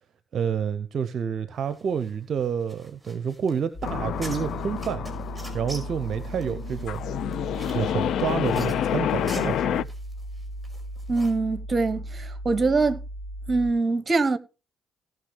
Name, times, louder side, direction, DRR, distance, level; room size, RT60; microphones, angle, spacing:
voice 1, 0.3-5.0 5.5-7.0 7.6-9.9, right 7 dB, 55° right, 0.6 m, -29 dB
sound 1, 1.6-11.3, right 1 dB, 5° right, 4.5 m, -46 dB
sound 2, 3.7-13.7, right 1 dB, 45° left, 2.0 m, -37 dB
sound 3, 3.8-9.8, left 10 dB, 65° left, 0.4 m, -29 dB
voice 2, 11.1-13.0 13.5-14.4, right 3 dB, 35° right, 1.1 m, -23 dB
17.5 x 6.1 x 3.2 m
hypercardioid pair, 45°, 0 cm